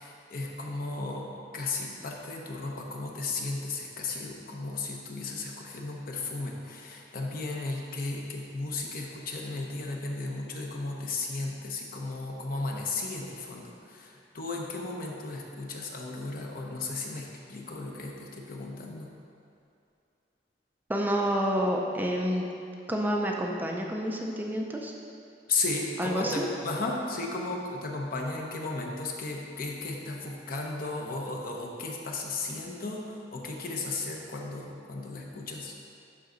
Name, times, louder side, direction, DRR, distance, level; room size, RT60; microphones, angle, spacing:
voice 1, 0.0-19.2 25.5-35.7, left 3 dB, 55° left, 0 dB, 0.9 m, -35 dB
voice 2, 20.9-22.5 22.9-24.9 26.0-26.5, equal, 10° right, 0 dB, 0.5 m, -28 dB
11.5 x 3.9 x 4.0 m, 2.5 s
head